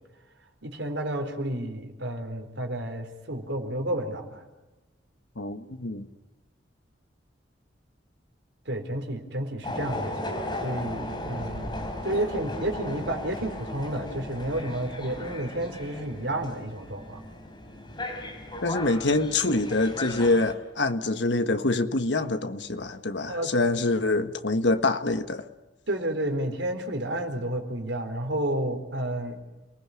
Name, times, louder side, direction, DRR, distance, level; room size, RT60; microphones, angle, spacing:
voice 1, 0.6-4.4 8.7-11.7 12.0-17.2 23.3-23.5 25.9-29.4, right 1 dB, 80° right, 4.3 m, -31 dB
voice 2, 5.4-6.1 18.6-25.5, left 2 dB, 75° left, 1.4 m, -25 dB
sound 1, 9.6-20.5, left 1 dB, 25° left, 4.1 m, -36 dB
29.0 x 19.5 x 9.9 m
head